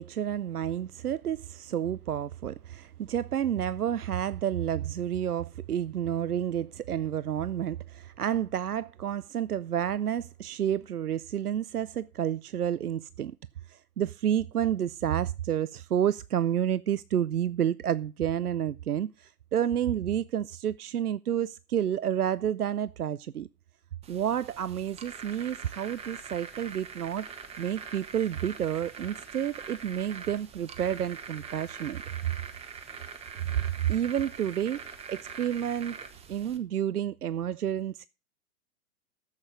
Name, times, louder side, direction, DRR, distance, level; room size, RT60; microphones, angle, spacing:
voice 1, 0.0-13.3 13.7-23.5 24.1-27.3 27.6-32.0 33.5-34.8 35.1-36.0 36.3-38.1, right 10 dB, 75° right, 0.6 m, -30 dB
sound 1, 24.0-36.6, right 6 dB, 15° right, 1.4 m, -43 dB
13.5 x 8.2 x 5.1 m
figure-of-eight pair, 115°, 46 cm